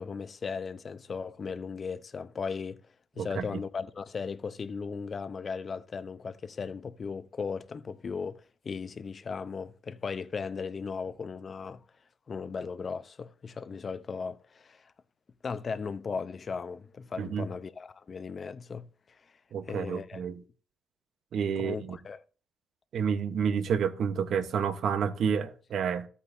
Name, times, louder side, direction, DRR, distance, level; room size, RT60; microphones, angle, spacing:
voice 1, 0.0-2.8 3.2-11.8 12.3-14.9 15.4-19.4 19.7-20.2 21.6-22.2, left 5 dB, 40° left, 0.7 m, -37 dB
voice 2, 3.2-3.6 17.2-17.5 19.5-20.4 21.3-22.0 22.9-26.1, right 7 dB, 65° right, 1.0 m, -29 dB
13.0 x 8.4 x 2.7 m
cardioid pair, 90°, 0 cm